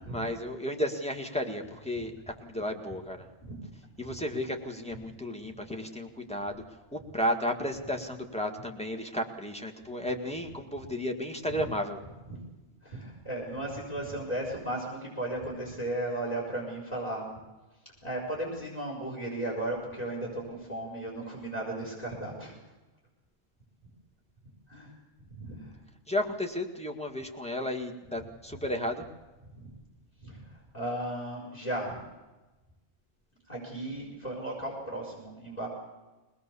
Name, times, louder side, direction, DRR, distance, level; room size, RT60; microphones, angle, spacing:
voice 1, 0.1-3.3 4.0-12.0 26.1-29.0, equal, 5° left, 3 dB, 1.7 m, -33 dB
voice 2, 12.8-17.2 18.0-22.6 24.7-24.9 25.3-25.7 29.5-29.7 30.2-32.0 33.5-35.7, right 1 dB, 30° left, -3 dB, 5.3 m, -35 dB
22.5 x 19.0 x 7.0 m, 1.1 s
omnidirectional pair, 1.4 m